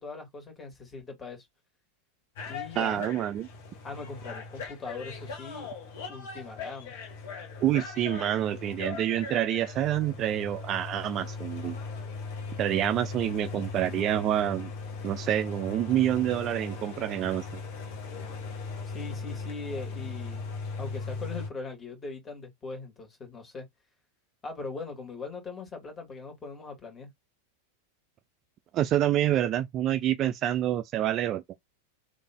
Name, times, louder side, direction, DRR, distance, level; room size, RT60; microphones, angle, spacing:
voice 1, 0.0-1.5 2.5-3.1 3.8-5.7 6.1-6.9 18.9-20.4 20.8-23.7 24.4-27.1, left 3 dB, 20° left, 2.0 m, -40 dB
sound 1, 2.4-21.5, left 4 dB, 55° left, 1.1 m, -39 dB
voice 2, 2.8-3.5 7.6-11.8 12.6-14.7 15.0-17.6 28.7-31.4, right 12 dB, 35° right, 0.3 m, -27 dB
3.3 x 2.6 x 3.5 m
figure-of-eight pair, 90°, 0 cm